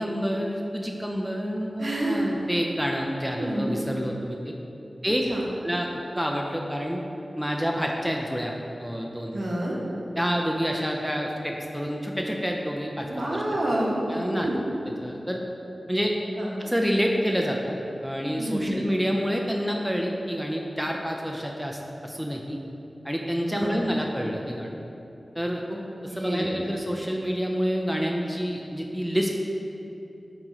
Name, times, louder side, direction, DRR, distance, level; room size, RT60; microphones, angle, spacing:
voice 1, 0.0-4.5 5.0-5.2 5.6-5.9 6.1-7.0 7.4-8.5 8.8-9.3 10.2-13.1 13.3-13.4 14.1-14.5 14.9-15.4 15.9-16.2 16.6-17.7 18.0-22.6 23.0-24.7 25.3-25.6 26.1-29.3, equal, ahead, 0 dB, 0.3 m, -28 dB
voice 2, 1.8-2.2 3.4-3.7 5.3-5.4 9.3-9.8 13.1-14.0 14.3-14.6 16.4-16.5 18.4-18.8 23.5-23.8 26.1-26.5, right 1 dB, 60° right, -4 dB, 0.7 m, -28 dB
4.2 x 3.0 x 3.8 m, 2.9 s
wide cardioid pair, 70°, 0 cm